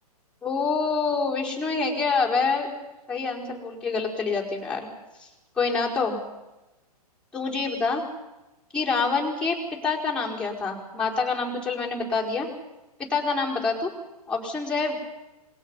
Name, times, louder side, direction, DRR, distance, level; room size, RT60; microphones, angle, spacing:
voice 1, 0.4-2.7 3.1-4.9 5.2-5.3 5.6-6.2 7.3-8.0 8.7-9.6 9.8-12.5 13.0-13.9 14.3-15.0, left 4 dB, 5° left, -4 dB, 4.7 m, -26 dB
27.0 x 21.0 x 5.5 m, 1.0 s
hypercardioid pair, 125°, 20 cm